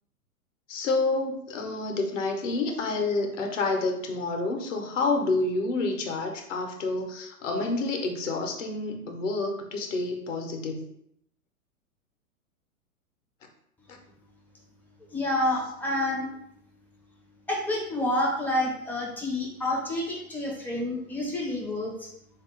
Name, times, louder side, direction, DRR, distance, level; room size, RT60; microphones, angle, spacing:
voice 1, 0.7-10.8, left 3 dB, 55° left, 3 dB, 1.0 m, -28 dB
voice 2, 15.0-16.3 17.5-22.1, left 1 dB, 5° left, -2 dB, 0.5 m, -29 dB
3.8 x 2.7 x 3.7 m, 0.73 s
figure-of-eight pair, 110°, 44 cm